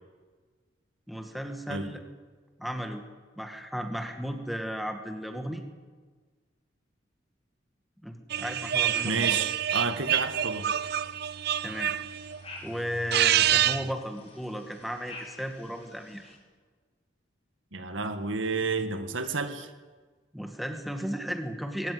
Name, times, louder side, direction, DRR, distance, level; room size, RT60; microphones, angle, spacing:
voice 1, 1.1-2.0 2.6-3.0 3.4-5.6 8.0-9.2 11.6-12.0 12.6-16.4 20.3-21.9, equal, ahead, 5 dB, 2.0 m, -35 dB
sound 1, 8.3-12.4 12.9-13.9, right 11 dB, 55° right, 0.6 m, -27 dB
sound 2, 8.4-16.4, left 2 dB, 30° left, 4.9 m, -50 dB
voice 2, 9.0-10.7 17.7-19.7, right 4 dB, 85° right, 8 dB, 1.9 m, -31 dB
21.5 x 17.0 x 9.6 m, 1.4 s
head